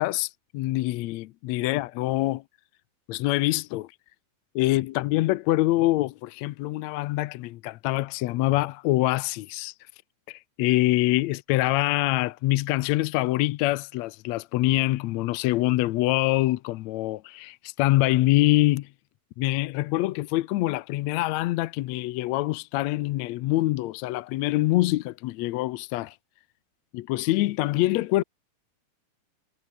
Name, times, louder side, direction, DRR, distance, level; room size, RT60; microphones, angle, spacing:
voice 1, 0.0-2.4 3.1-3.9 4.6-9.7 10.3-18.9 19.4-26.2 26.9-28.2, left 17 dB, 75° left, 1.8 m, -25 dB
omnidirectional pair, 3.5 m